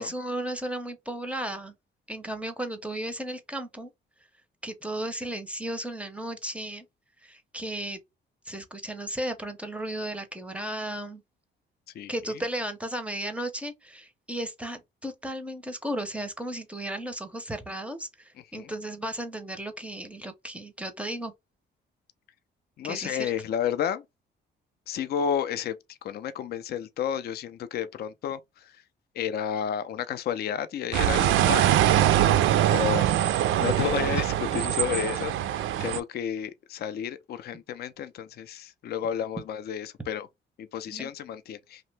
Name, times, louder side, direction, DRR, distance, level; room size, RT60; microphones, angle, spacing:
voice 1, 0.0-1.7 2.1-3.9 4.6-6.8 7.2-8.0 8.5-11.2 12.1-21.3 22.8-23.3 34.0-34.2 40.9-41.1, right 1 dB, 5° right, 0.6 m, -35 dB
voice 2, 22.8-24.0 24.9-28.7 29.2-31.8 32.7-33.1 33.6-40.3 40.6-41.8, left 9 dB, 55° left, 0.4 m, -31 dB
sound 1, 30.9-36.0, right 12 dB, 80° right, 0.4 m, -23 dB
2.8 x 2.1 x 3.2 m
cardioid pair, 90°, 20 cm